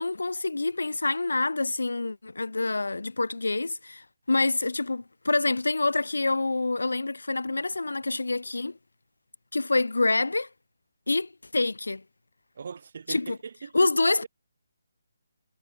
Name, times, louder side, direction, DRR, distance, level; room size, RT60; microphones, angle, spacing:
voice 1, 0.0-8.8 9.5-10.5 11.1-12.0 13.1-13.3 13.7-14.2, left 3 dB, 70° left, 0.3 m, -26 dB
voice 2, 12.5-13.9 14.2-14.3, right 6 dB, 50° right, 7.4 m, -40 dB
figure-of-eight pair, 145°, 0 cm